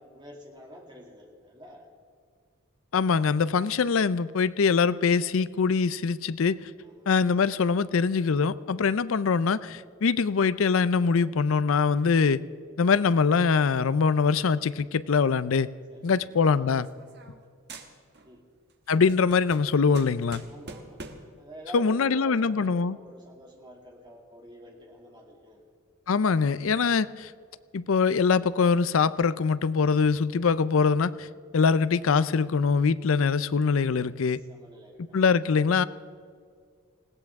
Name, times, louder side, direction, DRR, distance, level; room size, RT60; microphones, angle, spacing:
voice 1, 0.0-1.9 6.8-7.1 15.9-16.2 18.2-18.4 20.5-25.6 34.3-35.2, equal, 20° right, 0 dB, 2.4 m, -48 dB
voice 2, 2.9-6.7 7.1-12.4 12.8-15.7 16.0-16.9 18.9-20.4 21.7-23.0 26.1-27.3 27.7-31.3 31.5-34.4 35.1-35.8, left 5 dB, 70° left, 17 dB, 0.5 m, -23 dB
sound 1, 16.1-17.4 17.7-18.4 18.7-21.4, right 3 dB, 50° right, 1.3 m, -46 dB
20.5 x 17.5 x 3.6 m, 2.1 s
head